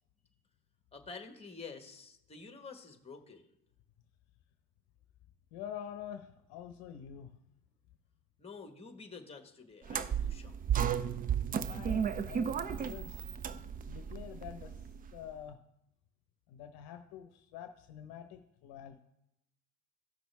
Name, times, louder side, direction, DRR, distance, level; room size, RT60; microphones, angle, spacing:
voice 1, 0.9-3.5 8.4-10.9, left 4 dB, 10° left, 6 dB, 1.5 m, -49 dB
voice 2, 5.5-7.3 11.7-13.5 13.9-15.6 16.5-19.0, left 9 dB, 55° left, 8 dB, 0.8 m, -47 dB
sound 1, 9.9-15.1, right 8 dB, 20° right, 0.4 m, -34 dB
15.0 x 6.0 x 3.5 m, 0.82 s
hypercardioid pair, 70°, 47 cm